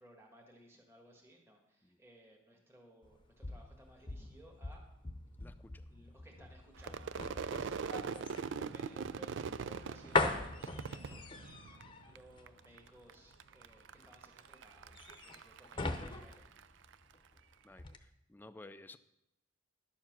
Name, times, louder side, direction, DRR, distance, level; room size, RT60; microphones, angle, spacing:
voice 1, 0.0-4.8 5.9-16.5, right 1 dB, 10° right, 0 dB, 1.5 m, -60 dB
sound 1, 3.0-17.4 17.7-18.0, left 3 dB, 25° left, 0.8 m, -41 dB
voice 2, 5.4-5.8 17.6-19.0, left 2 dB, 10° left, 10 dB, 0.3 m, -54 dB
Crowd / Fireworks, 6.8-12.2 12.5-13.1 13.4-16.9, right 6 dB, 60° right, 0.4 m, -42 dB
11.5 x 7.3 x 6.0 m, 0.88 s
head